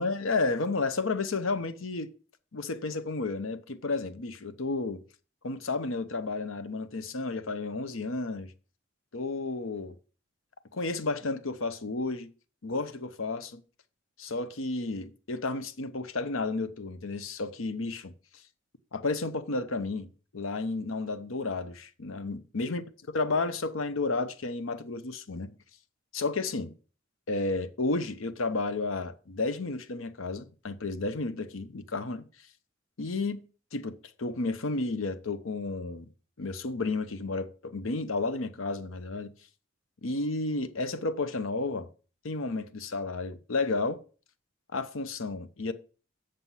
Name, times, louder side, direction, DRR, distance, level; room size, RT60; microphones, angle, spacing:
voice 1, 0.0-2.1 2.5-5.0 5.4-8.5 9.1-10.0 10.7-12.3 12.6-13.6 14.2-18.1 18.9-25.5 26.1-26.7 27.3-32.2 33.0-33.4 33.7-36.1 36.4-39.3 40.0-41.9 42.2-44.0 44.7-45.7, left 3 dB, 90° left, 0.9 m, -32 dB
7.7 x 6.8 x 5.6 m
head